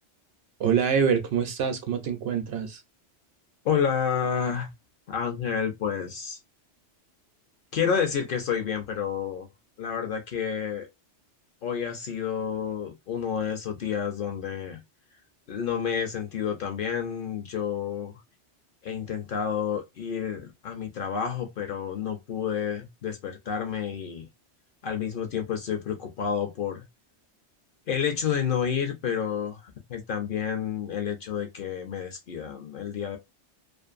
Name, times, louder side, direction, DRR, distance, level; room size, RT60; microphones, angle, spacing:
voice 1, 0.6-2.8, right 7 dB, 65° right, 0.8 m, -25 dB
voice 2, 3.6-4.7 5.1-6.4 7.7-9.5 9.8-10.9 11.6-14.8 15.5-18.2 18.8-24.3 24.8-26.8 27.9-33.2, left 7 dB, 60° left, 0.6 m, -29 dB
2.5 x 2.5 x 2.4 m
omnidirectional pair, 1.2 m